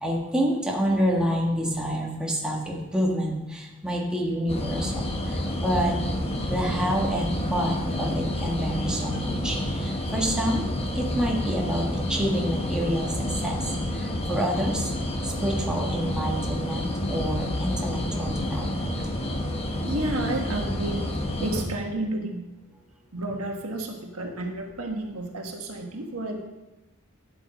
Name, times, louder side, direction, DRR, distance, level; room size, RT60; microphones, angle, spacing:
voice 1, 0.0-4.9 5.6-5.9 6.5-10.7 10.9-13.1 13.4-13.5 14.3-14.9 15.4-18.7, equal, 5° right, -3 dB, 1.7 m, -27 dB
sound 1, 4.5-21.7, left 1 dB, 25° left, 1.1 m, -29 dB
voice 2, 19.8-21.1 21.4-22.5 23.1-26.4, right 2 dB, 75° right, 2 dB, 1.6 m, -31 dB
12.0 x 8.1 x 4.3 m, 1.0 s
head